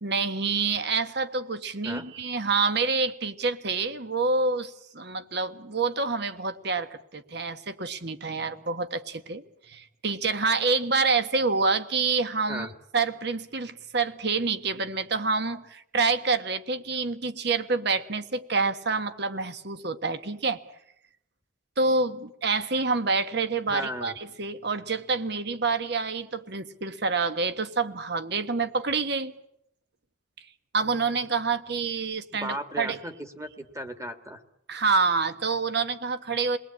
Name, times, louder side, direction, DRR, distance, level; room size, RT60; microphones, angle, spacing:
voice 1, 0.0-12.7 12.9-20.6 21.8-29.3 30.7-33.0 34.7-36.6, right 4 dB, 60° right, 11 dB, 1.4 m, -27 dB
voice 2, 23.7-24.2 32.4-34.4, equal, 15° right, 8 dB, 1.7 m, -36 dB
28.5 x 20.0 x 8.5 m, 0.77 s
head